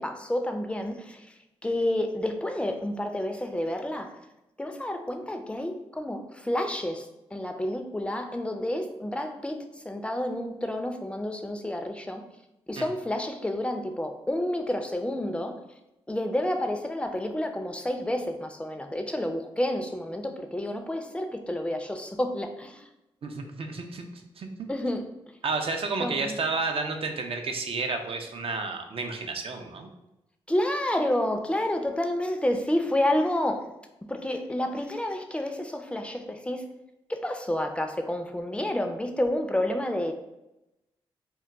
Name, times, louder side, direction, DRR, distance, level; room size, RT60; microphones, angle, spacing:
voice 1, 0.0-1.3 1.6-4.2 4.6-12.2 12.7-15.6 16.1-22.9 24.7-25.0 26.0-26.4 30.5-33.7 34.1-36.6 37.1-40.1, left 1 dB, 10° left, 5 dB, 0.4 m, -29 dB
voice 2, 23.2-24.5 25.4-29.9, right 3 dB, 55° right, 4 dB, 0.5 m, -31 dB
2.2 x 2.2 x 3.7 m, 0.92 s
supercardioid pair, 45°, 11 cm